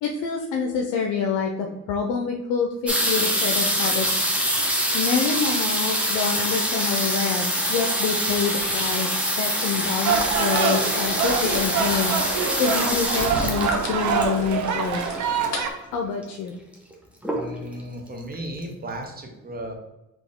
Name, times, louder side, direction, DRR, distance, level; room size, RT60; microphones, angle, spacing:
voice 1, 0.0-4.7 4.9-15.1 15.9-16.5, left 5 dB, 90° left, 2 dB, 0.5 m, -27 dB
sound 1, 2.9-15.4 16.2-16.3 16.5-16.9 17.2-17.8 18.3-18.4 18.6-18.7, equal, 5° right, 1.0 m, -25 dB
sound 2, 6.7-15.6, left 4 dB, 60° left, 1.2 m, -41 dB
sound 3, 10.0-15.7, right 6 dB, 70° right, 0.6 m, -25 dB
voice 2, 17.3-19.7, right 1 dB, 30° right, 3 dB, 1.0 m, -35 dB
4.2 x 3.0 x 3.5 m, 0.99 s
cardioid pair, 90°, 30 cm